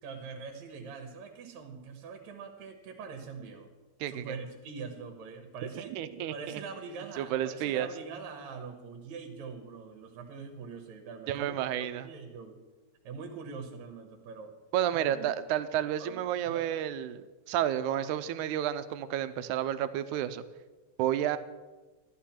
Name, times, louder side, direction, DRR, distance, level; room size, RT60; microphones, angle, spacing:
voice 1, 0.0-3.7 4.1-5.9 6.3-12.6 13.0-14.5 14.9-15.3 16.0-16.1 16.5-16.8 18.0-18.1, right 5 dB, 70° right, 4 dB, 2.4 m, -43 dB
voice 2, 4.0-4.3 5.8-6.6 7.2-7.9 11.3-12.1 14.7-20.4 21.0-21.4, right 11 dB, 90° right, 12 dB, 2.0 m, -31 dB
13.5 x 11.5 x 4.3 m, 1.2 s
omnidirectional pair, 3.4 m